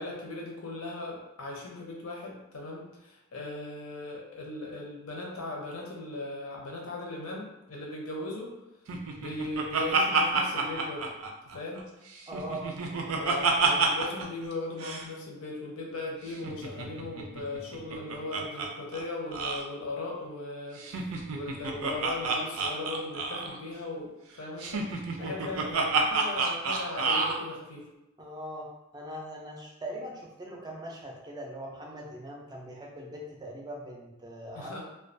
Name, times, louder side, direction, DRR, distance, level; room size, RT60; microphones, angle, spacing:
voice 1, 0.0-8.5 9.2-11.1 11.5-11.9 13.1-24.9 25.2-27.9 34.6-34.8, left 2 dB, 80° left, -1 dB, 0.7 m, -38 dB
Laughter, 8.9-11.8 12.2-14.3 14.5-14.6 14.8-15.1 16.3-18.7 18.9-19.0 19.3-19.6 20.8-23.6 24.6-27.4, right 4 dB, 85° right, 0.4 m, -29 dB
voice 2, 12.3-12.7 25.2-25.4 28.2-34.7, equal, 20° right, -1 dB, 0.4 m, -41 dB
2.3 x 2.2 x 2.5 m, 0.94 s
head